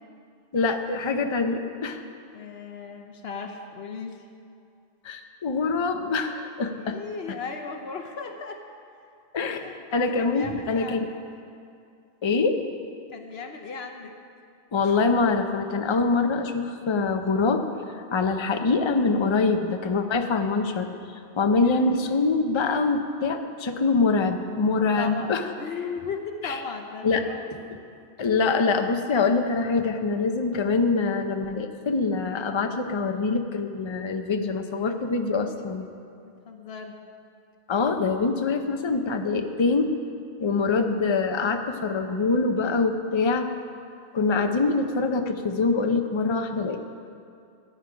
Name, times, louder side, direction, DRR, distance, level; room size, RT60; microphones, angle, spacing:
voice 1, 0.5-2.0 5.0-7.0 7.3-7.4 9.3-11.1 12.2-12.6 14.7-20.9 21.4-25.4 26.4-26.6 27.0-27.2 28.2-35.9 37.7-40.0 40.4-43.5 44.1-46.8, left 4 dB, 30° left, 6 dB, 0.6 m, -24 dB
voice 2, 2.3-4.2 6.8-8.6 9.6-9.8 10.0-11.2 13.1-14.1 21.5-21.9 25.0-27.5 36.2-37.0, left 5 dB, 70° left, 4 dB, 1.1 m, -36 dB
14.5 x 9.8 x 5.1 m, 2.5 s
omnidirectional pair, 1.1 m